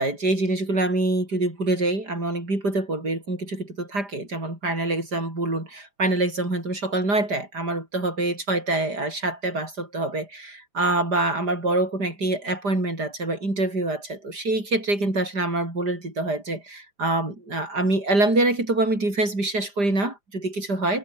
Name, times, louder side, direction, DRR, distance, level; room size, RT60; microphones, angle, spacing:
voice 1, 0.0-21.0, right 2 dB, 65° right, 8.4 m, -25 dB
omnidirectional pair, 1.9 m